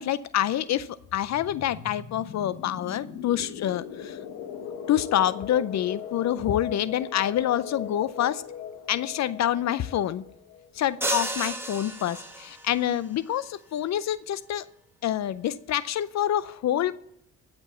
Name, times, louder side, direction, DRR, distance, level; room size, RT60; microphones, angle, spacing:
voice 1, 0.0-4.2 4.9-8.4 8.9-10.2 10.7-14.7 15.0-17.0, left 11 dB, 60° left, 16 dB, 0.6 m, -27 dB
sound 1, 1.0-11.5, left 8 dB, 90° left, 1.3 m, -39 dB
sound 2, 11.0-12.8, right 1 dB, 10° right, 1.6 m, -32 dB
15.5 x 5.3 x 7.1 m, 0.73 s
cardioid pair, 90°, 30 cm